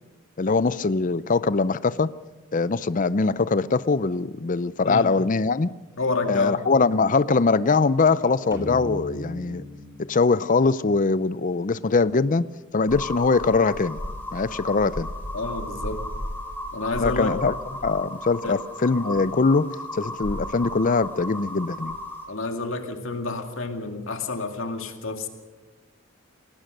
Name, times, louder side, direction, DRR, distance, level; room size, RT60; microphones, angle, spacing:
voice 1, 0.4-2.1 2.5-5.7 6.3-9.6 10.1-14.0 14.3-15.1 17.0-17.5 17.8-22.0, left 4 dB, 40° left, 16 dB, 0.5 m, -22 dB
voice 2, 6.0-6.6 15.3-16.0 16.7-17.4 18.4-18.6 22.3-25.3, left 3 dB, 65° left, 5 dB, 2.3 m, -29 dB
sound 1, 8.5-12.0, left 1 dB, 15° right, 3.0 m, -39 dB
sound 2, 12.9-22.2, left 1 dB, 10° left, 3.5 m, -34 dB
22.0 x 18.0 x 6.6 m, 1.2 s
head